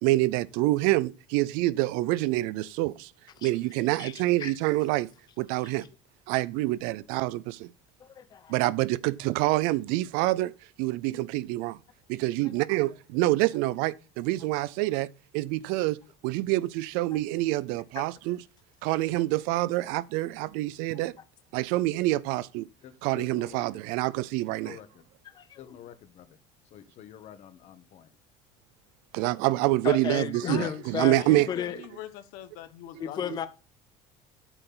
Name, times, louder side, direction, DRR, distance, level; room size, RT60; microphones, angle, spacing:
voice 1, 0.0-3.1 3.4-5.1 5.4-5.9 6.3-7.7 8.5-10.5 10.8-11.8 12.1-15.1 15.3-18.4 18.8-21.1 21.5-22.7 23.0-24.8 29.1-31.5, right 18 dB, 80° right, 0.5 m, -26 dB
voice 2, 4.0-4.5 5.6-5.7 8.0-8.5 11.1-11.2 18.0-18.1 25.3-25.6 29.8-31.8 33.0-33.5, left 8 dB, 30° left, 0.7 m, -34 dB
voice 3, 22.8-23.8 24.6-25.0 25.6-26.4 26.7-28.1, left 11 dB, 50° left, 1.3 m, -48 dB
voice 4, 30.4-33.5, left 13 dB, 75° left, 1.3 m, -42 dB
8.9 x 6.8 x 4.0 m
cardioid pair, 145°, 15 cm